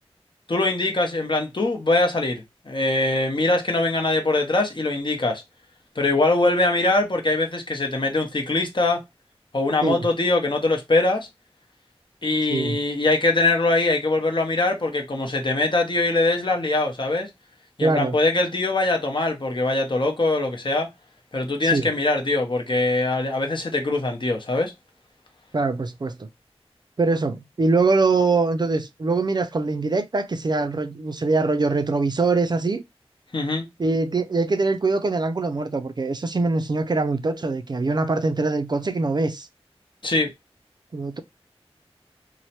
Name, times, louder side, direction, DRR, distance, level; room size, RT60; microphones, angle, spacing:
voice 1, 0.5-5.4 6.0-9.0 9.5-11.3 12.2-17.3 17.8-20.9 21.3-24.7 33.3-33.6 40.0-40.3, left 2 dB, 50° left, 0.8 m, -22 dB
voice 2, 17.8-18.2 21.6-21.9 25.5-26.3 27.0-32.8 33.8-39.5 40.9-41.2, right 3 dB, 45° right, 0.3 m, -23 dB
3.1 x 2.0 x 2.8 m
wide cardioid pair, 55°, 11 cm